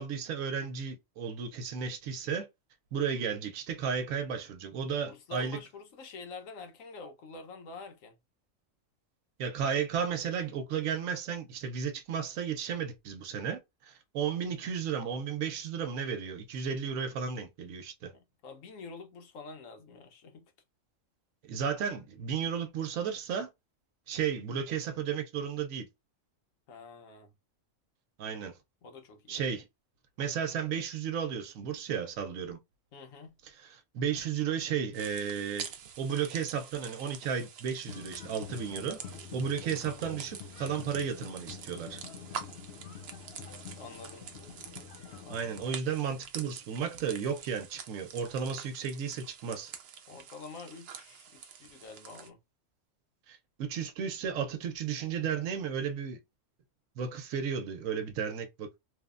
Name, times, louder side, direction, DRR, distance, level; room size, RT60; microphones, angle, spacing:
voice 1, 0.0-2.5 2.9-5.6 9.4-18.1 21.4-23.5 24.1-25.9 28.2-28.6 29.3-29.7 30.2-32.6 33.4-35.6 36.0-39.0 39.3-42.0 45.3-49.7 53.3-56.2 57.0-58.7, right 7 dB, 90° right, 1.0 m, -34 dB
voice 2, 4.9-8.2 18.0-20.5 26.7-27.3 28.8-29.4 32.9-33.3 43.7-44.3 45.2-45.9 50.1-52.4, left 4 dB, 90° left, 1.2 m, -47 dB
sound 1, 34.9-52.3, right 7 dB, 65° right, 0.7 m, -47 dB
sound 2, 37.8-45.7, left 7 dB, 60° left, 0.8 m, -47 dB
3.1 x 2.1 x 2.4 m
omnidirectional pair, 1.3 m